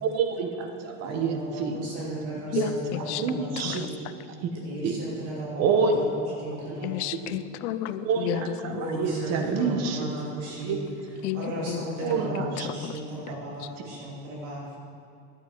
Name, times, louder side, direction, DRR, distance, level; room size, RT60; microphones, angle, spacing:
voice 1, 0.0-1.8 2.5-2.7 3.0-3.8 4.4-4.5 4.8-4.9 5.6-6.0 8.0-10.1 10.6-10.8 12.0-12.7, right 5 dB, 50° right, 5 dB, 1.2 m, -27 dB
voice 2, 1.0-3.9 4.6-7.0 8.7-10.8 11.1-14.8, equal, 90° right, -6 dB, 2.9 m, -35 dB
voice 3, 6.8-8.7 11.2-11.5, left 14 dB, 85° left, 13 dB, 0.6 m, -31 dB
12.0 x 8.4 x 4.6 m, 2.6 s
supercardioid pair, 135°, 33 cm